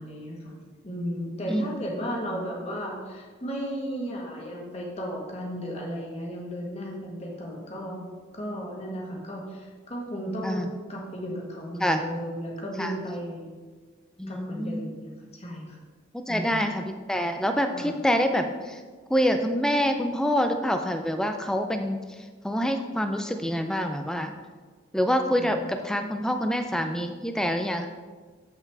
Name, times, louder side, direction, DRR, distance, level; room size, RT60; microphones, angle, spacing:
voice 1, 0.0-13.6 14.3-15.8 16.3-16.7 17.7-17.9 25.3-25.6, equal, 30° left, -2 dB, 1.4 m, -35 dB
voice 2, 14.2-14.8 16.1-18.8 19.1-22.0 22.4-24.3 24.9-27.9, equal, 5° left, 6 dB, 0.4 m, -26 dB
7.9 x 5.8 x 3.4 m, 1.4 s
head